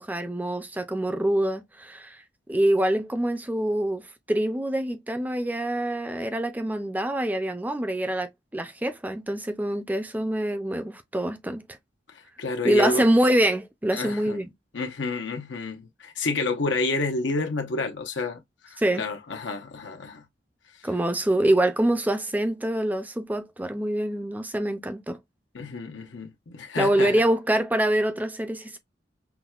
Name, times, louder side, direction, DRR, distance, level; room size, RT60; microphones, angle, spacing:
voice 1, 0.0-2.2 2.5-11.6 12.6-14.5 18.8-19.0 20.8-25.2 26.8-28.8, right 1 dB, 10° right, 0.4 m, -25 dB
voice 2, 12.4-13.1 13.9-14.4 14.7-18.4 18.7-20.2 25.5-27.1, left 3 dB, 90° left, 0.8 m, -29 dB
5.8 x 2.2 x 2.3 m
head